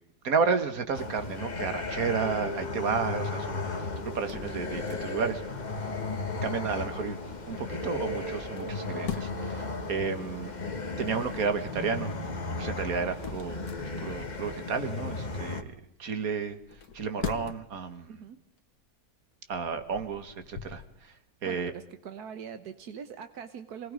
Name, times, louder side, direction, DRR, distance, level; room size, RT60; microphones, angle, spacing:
voice 1, 0.2-5.4 6.4-7.2 7.5-10.5 11.0-12.1 12.6-13.6 13.8-15.7 16.0-16.6 16.9-18.2 19.5-21.1 21.4-21.7, right 5 dB, 70° right, 9 dB, 2.0 m, -32 dB
sound 1, 0.9-15.6, left 3 dB, 30° left, 1.4 m, -36 dB
sound 2, 2.2-15.3, right 1 dB, 35° right, 2.2 m, -43 dB
sound 3, 4.0-5.4 8.3-9.6 12.5-14.3 16.6-17.8 18.4-18.6 19.3-20.9, left 7 dB, 75° left, 1.8 m, -42 dB
voice 2, 18.1-18.4 21.4-23.9, right 7 dB, 85° right, 9 dB, 1.6 m, -42 dB
26.5 x 19.0 x 5.2 m, 0.71 s
omnidirectional pair, 1.6 m